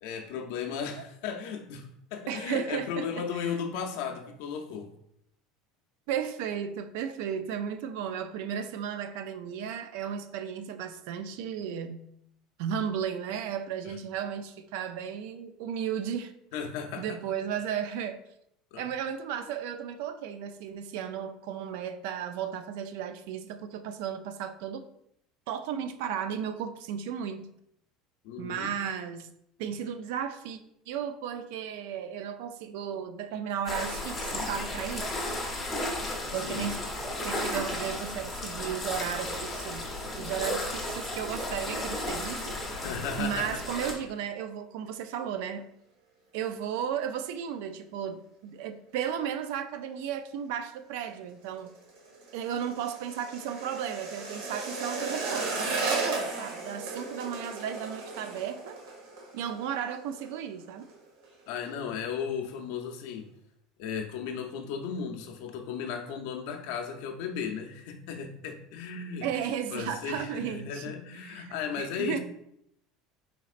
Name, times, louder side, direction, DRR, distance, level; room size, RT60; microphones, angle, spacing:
voice 1, 0.0-4.9 13.8-14.0 16.5-17.2 18.7-18.8 28.2-28.7 36.5-36.6 42.6-43.6 61.5-63.3 63.8-69.3 69.7-72.2, left 7 dB, 65° left, 3 dB, 0.5 m, -35 dB
voice 2, 2.3-3.1 6.1-12.0 12.6-16.3 17.0-18.2 18.7-24.8 25.5-27.5 28.4-29.3 29.6-30.6 30.9-35.1 36.3-36.8 37.2-42.6 43.2-45.7 46.3-51.7 52.3-58.8 59.3-60.9 69.2-70.9 71.2-72.2, right 8 dB, 70° right, 9 dB, 0.3 m, -34 dB
sound 1, 33.7-43.9, left 1 dB, 10° left, 0.7 m, -34 dB
sound 2, 51.3-60.3 60.6-61.0 61.2-61.8 62.1-62.2, right 3 dB, 85° right, 1.3 m, -36 dB
4.2 x 3.9 x 2.4 m, 0.74 s
cardioid pair, 170°, 0 cm